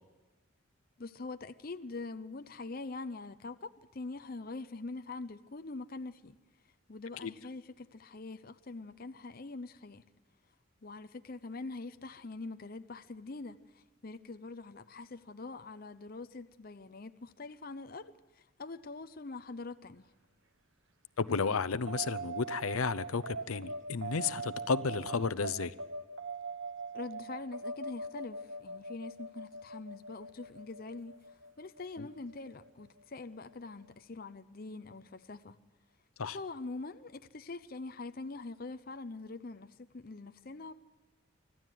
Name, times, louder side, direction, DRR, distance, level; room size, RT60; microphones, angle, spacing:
voice 1, 1.0-6.4 6.9-10.0 10.8-20.1 26.9-35.6 36.2-40.7, left 3 dB, 45° left, 0.6 m, -44 dB
voice 2, 21.2-25.7 32.0-32.1 36.2-36.4, left 5 dB, 80° left, 0.7 m, -32 dB
sound 1, 21.9-32.6, right 3 dB, 60° right, 1.3 m, -42 dB
25.5 x 14.0 x 9.3 m
head